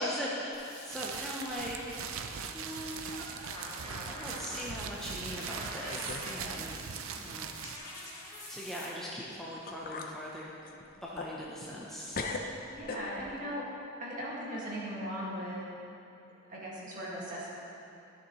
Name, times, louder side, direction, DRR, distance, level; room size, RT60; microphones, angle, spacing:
voice 1, 0.0-1.8 2.5-3.2 4.1-6.8 7.2-7.5 8.5-10.5 11.0-12.4, equal, ahead, -6 dB, 0.8 m, -39 dB
sound 1, 0.5-8.9, left 1 dB, 20° left, 1.8 m, -47 dB
sound 2, 0.9-7.8, right 6 dB, 80° right, 0.5 m, -41 dB
sound 3, 1.5-2.4 2.7-3.1 3.6-3.7 4.5-4.7 5.4-5.5 5.9-6.3 6.6-6.7 9.2-9.3 9.7-10.2 10.6-11.9 12.1-13.4, left 3 dB, 45° left, 0.6 m, -41 dB
voice 2, 12.7-13.6 14.0-15.8 16.5-17.5, equal, 40° right, -6 dB, 1.9 m, -38 dB
13.0 x 6.5 x 3.1 m, 2.9 s
head